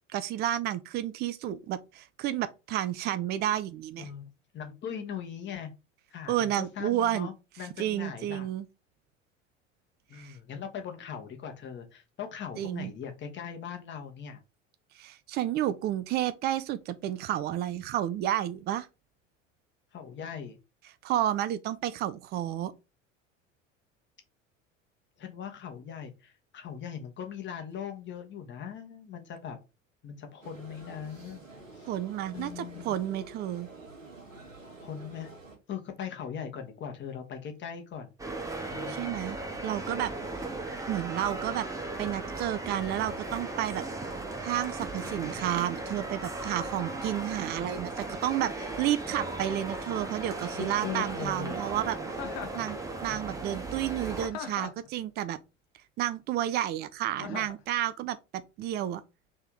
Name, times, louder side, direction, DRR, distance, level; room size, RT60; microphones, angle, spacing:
voice 1, 0.1-4.1 6.3-7.3 7.8-8.7 10.1-10.4 12.6-12.9 15.0-18.9 21.0-22.7 31.9-33.7 38.9-39.4 39.6-40.1 40.9-41.7 42.0-43.8 44.4-52.0 52.5-55.4 56.0-59.0, right 12 dB, 25° right, 0.4 m, -31 dB
voice 2, 4.0-4.3 4.5-5.7 6.1-8.5 10.1-14.4 19.9-20.6 25.2-29.6 30.0-31.4 31.7-31.9 32.3-32.9 34.8-35.3 35.7-38.1 38.7-39.1 45.0-45.4 50.5-51.6 53.1-53.4 54.4-54.6, left 8 dB, 30° left, 1.2 m, -40 dB
sound 1, 30.4-35.6, right 3 dB, 90° right, 1.1 m, -48 dB
sound 2, 38.2-54.3, right 2 dB, 10° right, 0.9 m, -37 dB
Chuckle chortle, 52.1-52.7 54.3-54.9 57.2-57.6, left 8 dB, 45° left, 1.0 m, -39 dB
3.4 x 3.4 x 4.4 m
figure-of-eight pair, 75°, 38 cm